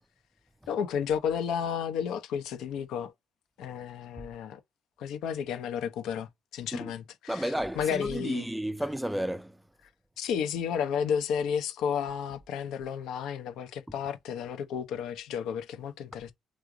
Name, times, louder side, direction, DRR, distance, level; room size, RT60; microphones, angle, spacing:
voice 1, 0.7-3.1 3.6-4.6 5.0-8.5 10.2-16.3, left 8 dB, 85° left, 0.8 m, -32 dB
voice 2, 7.3-9.6, right 1 dB, 5° right, 0.4 m, -32 dB
3.6 x 3.2 x 3.8 m
cardioid pair, 90°, 0 cm